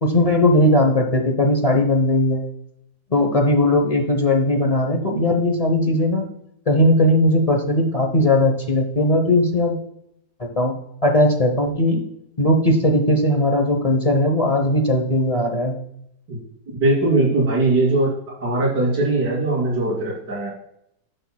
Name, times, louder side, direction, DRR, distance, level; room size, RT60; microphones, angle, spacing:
voice 1, 0.0-2.4 3.1-6.2 6.7-9.8 10.6-10.7 11.0-12.0 12.4-15.8, left 1 dB, 35° left, 2 dB, 0.5 m, -18 dB
voice 2, 16.7-18.1 18.4-20.5, right 2 dB, 75° right, -5 dB, 3.6 m, -20 dB
10.0 x 6.4 x 2.2 m, 0.76 s
omnidirectional pair, 1.9 m